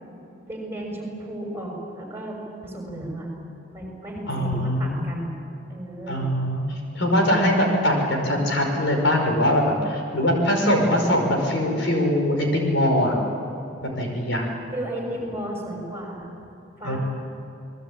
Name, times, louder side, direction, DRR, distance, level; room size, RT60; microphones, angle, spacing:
voice 1, 0.4-3.3 3.7-5.3 5.7-6.2 14.7-16.3 16.8-17.0, right 1 dB, 10° right, -1 dB, 6.3 m, -33 dB
voice 2, 4.3-5.1 6.1-6.6 6.9-13.2 13.8-14.4 16.8-17.0, equal, 65° left, 1 dB, 5.3 m, -22 dB
28.5 x 20.5 x 8.8 m, 2.8 s
head